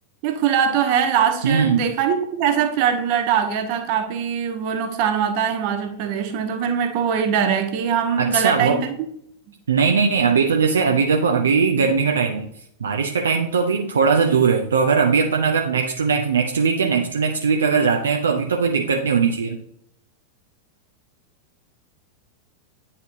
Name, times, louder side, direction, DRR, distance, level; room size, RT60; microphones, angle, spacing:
voice 1, 0.2-8.9, right 8 dB, 45° right, 1.0 m, -22 dB
voice 2, 1.4-1.9 8.2-8.8 9.7-12.5 12.8-19.6, right 5 dB, 70° right, 0.5 m, -19 dB
9.3 x 4.1 x 2.6 m
figure-of-eight pair, 90°, 0 cm